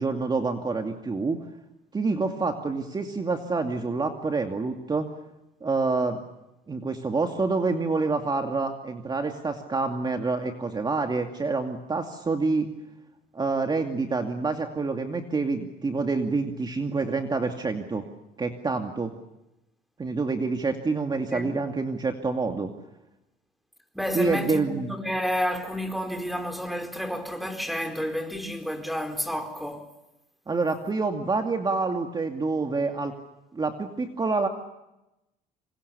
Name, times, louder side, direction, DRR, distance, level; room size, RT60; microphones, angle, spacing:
voice 1, 0.0-1.4 1.9-5.1 5.6-6.2 6.7-12.7 13.3-18.1 18.4-19.1 20.0-22.7 24.1-24.9 30.5-33.1 33.5-34.5, right 3 dB, 25° right, 2.5 m, -27 dB
voice 2, 23.9-29.9, equal, ahead, 4.3 m, -30 dB
27.0 x 27.0 x 7.0 m
cardioid pair, 110°, 17 cm